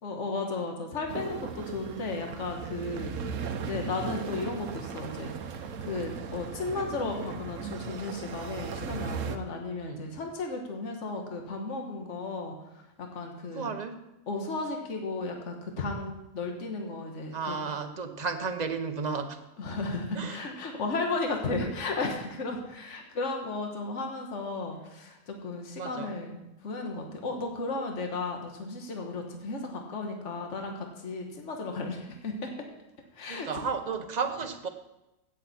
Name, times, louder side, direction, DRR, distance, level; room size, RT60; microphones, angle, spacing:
voice 1, 0.0-12.5 13.0-13.7 14.3-17.7 19.6-32.5 33.1-33.7, left 3 dB, 60° left, 2 dB, 1.7 m, -34 dB
sound 1, 1.1-9.4, right 6 dB, 65° right, 1.1 m, -37 dB
voice 2, 13.5-14.0 17.3-19.4 20.1-20.4 25.8-26.1 33.3-34.7, right 5 dB, 35° right, 7 dB, 0.9 m, -33 dB
16.0 x 7.5 x 4.3 m, 0.95 s
omnidirectional pair, 1.5 m